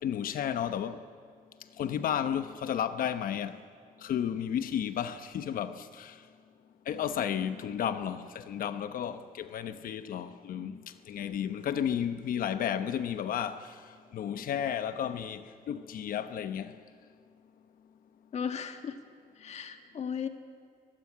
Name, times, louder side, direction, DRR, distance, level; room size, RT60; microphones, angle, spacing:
voice 1, 0.0-1.0 1.8-3.6 4.0-6.2 6.9-10.8 11.1-13.8 14.1-16.8, left 9 dB, 70° left, 1.0 m, -33 dB
voice 2, 18.3-19.0 19.4-20.3, left 7 dB, 50° left, 1.7 m, -36 dB
24.5 x 21.0 x 9.7 m
wide cardioid pair, 175°, 15 cm